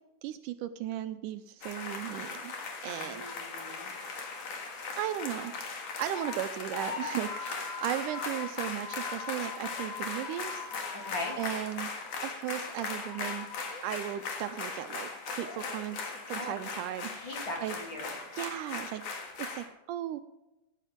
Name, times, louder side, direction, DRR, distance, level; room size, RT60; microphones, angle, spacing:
voice 1, 0.2-2.5 2.8-3.3 5.0-5.5 6.0-10.7 11.4-11.9 12.2-13.5 13.8-17.7 18.3-19.0 19.4-20.2, right 12 dB, 80° right, 10 dB, 1.9 m, -36 dB
sound 1, 1.6-19.7, left 4 dB, 55° left, 2.6 m, -38 dB
voice 2, 2.8-3.9 10.9-11.4 16.3-16.6 17.1-18.1, left 1 dB, 40° left, 0 dB, 2.8 m, -40 dB
16.0 x 9.9 x 3.6 m, 1.0 s
omnidirectional pair, 3.8 m